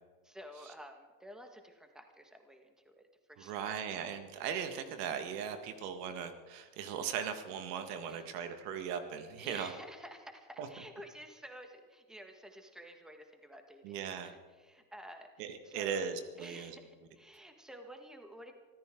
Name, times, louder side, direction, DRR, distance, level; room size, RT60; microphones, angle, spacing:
voice 1, 0.2-3.8 8.1-8.3 9.4-16.0 16.4-18.5, equal, ahead, 4 dB, 1.7 m, -51 dB
voice 2, 3.4-9.7 10.6-10.7 13.8-14.3 15.4-16.8, right 7 dB, 85° right, 7 dB, 1.9 m, -38 dB
25.0 x 14.0 x 3.8 m, 1.4 s
supercardioid pair, 120°, 46 cm